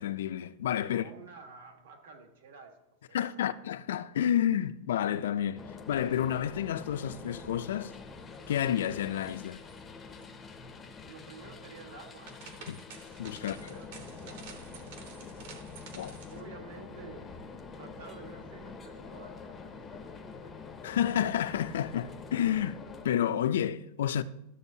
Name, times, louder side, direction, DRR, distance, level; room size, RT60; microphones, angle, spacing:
voice 1, 0.0-1.1 3.1-7.9 8.5-9.6 12.7-12.8 13.2-13.7 15.9-16.2 20.8-24.2, left 10 dB, 85° left, 0.4 m, -30 dB
voice 2, 0.9-2.8 3.1-3.5 11.0-12.4 13.4-15.3 15.7-17.3 17.7-20.6, right 4 dB, 70° right, 1.4 m, -51 dB
sound 1, 5.6-23.1, left 4 dB, 10° left, 0.5 m, -46 dB
sound 2, 6.9-7.9 8.2-8.6 8.9-9.8 10.1-10.2 11.9-16.4, right 6 dB, 50° right, 0.9 m, -51 dB
12.5 x 6.9 x 2.7 m
supercardioid pair, 180°, 0 cm